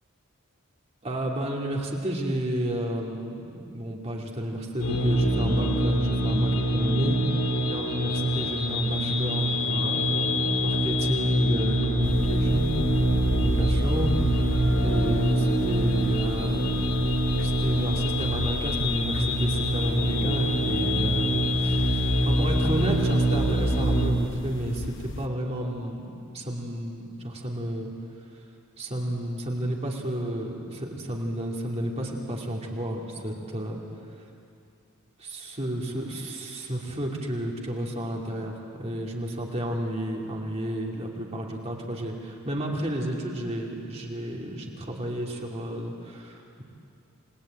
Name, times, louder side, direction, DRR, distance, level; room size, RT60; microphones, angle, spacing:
voice 1, 1.0-14.1 14.8-16.8 17.4-27.9 28.3-28.4 28.8-33.8 35.2-46.6, right 1 dB, 30° right, -1 dB, 2.6 m, -31 dB
sound 1, 4.8-24.1, equal, 75° left, 2.7 m, -25 dB
sound 2, 12.0-25.3, left 1 dB, 60° left, 1.1 m, -34 dB
28.5 x 19.5 x 9.0 m, 2.5 s
head